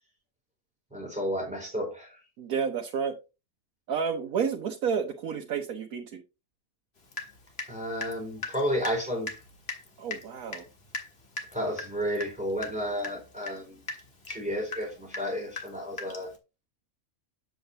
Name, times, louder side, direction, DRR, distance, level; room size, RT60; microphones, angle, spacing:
voice 1, 0.9-2.1 7.7-9.3 11.5-13.8 14.3-16.3, equal, 5° right, -1 dB, 4.1 m, -32 dB
voice 2, 2.4-3.2 3.9-6.2 10.0-10.6, right 6 dB, 85° right, 2 dB, 1.4 m, -30 dB
Water tap faucet / Drip, 7.1-7.7 8.0-16.4, left 3 dB, 45° left, 1.8 m, -39 dB
7.9 x 7.8 x 2.8 m, 0.27 s
omnidirectional pair, 1.5 m